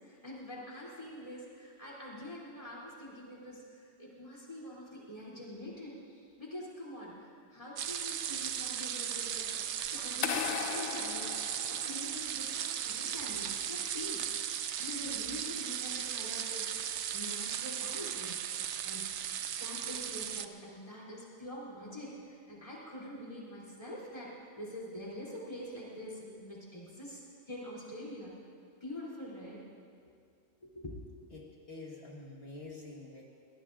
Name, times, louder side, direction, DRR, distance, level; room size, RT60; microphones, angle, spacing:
voice 1, 0.0-9.6 9.9-14.3 14.8-18.4 18.8-19.1 19.6-28.3 28.8-29.6 30.6-31.0, left 1 dB, 25° left, -6 dB, 3.3 m, -45 dB
sound 1, 7.8-20.5, right 9 dB, 65° right, 0.9 m, -36 dB
sound 2, 10.2-12.3, left 9 dB, 70° left, 0.8 m, -37 dB
voice 2, 31.3-33.2, left 2 dB, 50° left, -3 dB, 1.8 m, -47 dB
23.0 x 18.0 x 2.6 m, 2.3 s
omnidirectional pair, 1.3 m